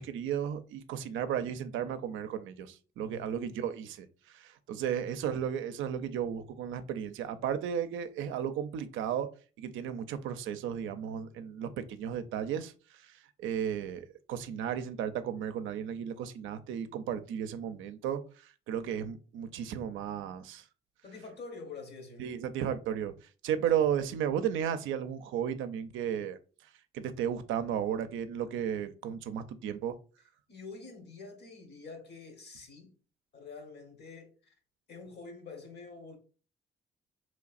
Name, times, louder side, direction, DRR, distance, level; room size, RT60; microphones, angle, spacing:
voice 1, 0.0-9.3 9.6-12.7 13.0-13.1 13.4-20.6 22.2-23.1 23.4-26.4 26.9-30.0, right 9 dB, 85° right, 0.4 m, -34 dB
voice 2, 3.0-3.4 4.8-5.1 21.0-22.3 23.8-23.9 30.5-32.9 33.3-34.5 34.9-36.2, left 4 dB, 60° left, 1.2 m, -47 dB
3.9 x 3.1 x 2.4 m
cardioid pair, 90°, 20 cm